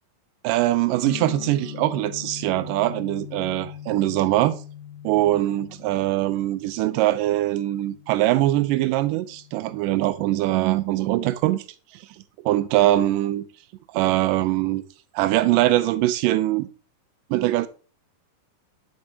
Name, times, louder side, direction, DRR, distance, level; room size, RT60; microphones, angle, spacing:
voice 1, 0.4-4.6 5.0-11.6 11.9-12.0 12.5-13.4 13.9-14.8 15.1-16.7 17.3-17.7, right 15 dB, 80° right, 2.1 m, -22 dB
sound 1, 1.0-10.8, left 11 dB, 85° left, 2.3 m, -41 dB
9.5 x 5.4 x 2.8 m
omnidirectional pair, 4.0 m